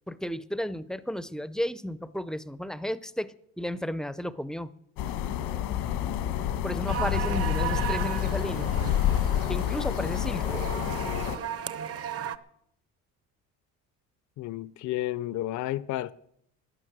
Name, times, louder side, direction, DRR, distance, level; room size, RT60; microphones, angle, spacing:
voice 1, 0.1-4.7 6.6-8.7 9.5-10.6, equal, ahead, 0.5 m, -33 dB
sound 1, 5.0-11.4, left 10 dB, 85° left, 1.4 m, -28 dB
sound 2, 6.9-12.4, right 10 dB, 40° right, 0.8 m, -35 dB
voice 2, 14.4-16.1, left 14 dB, 55° left, 0.5 m, -31 dB
12.5 x 10.5 x 7.9 m
cardioid pair, 125°, 35 cm